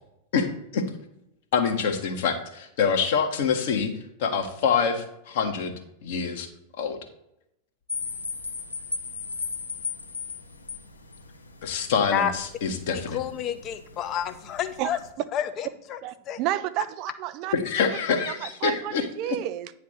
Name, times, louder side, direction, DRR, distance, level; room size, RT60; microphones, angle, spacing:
voice 1, 1.5-3.9 4.2-5.7 6.0-6.5 6.8-7.0 11.6-13.2 17.5-19.4, left 6 dB, 55° left, 4 dB, 1.1 m, -25 dB
sound 1, 7.9-15.1, left 4 dB, 80° left, 0.7 m, -37 dB
voice 2, 12.9-15.0 15.3-16.0 16.3-16.4, left 9 dB, 35° left, 10 dB, 0.6 m, -29 dB
voice 3, 16.0-17.5 18.3-19.7, right 14 dB, 40° right, 12 dB, 0.3 m, -31 dB
9.2 x 3.2 x 6.2 m, 0.80 s
figure-of-eight pair, 90°, 0 cm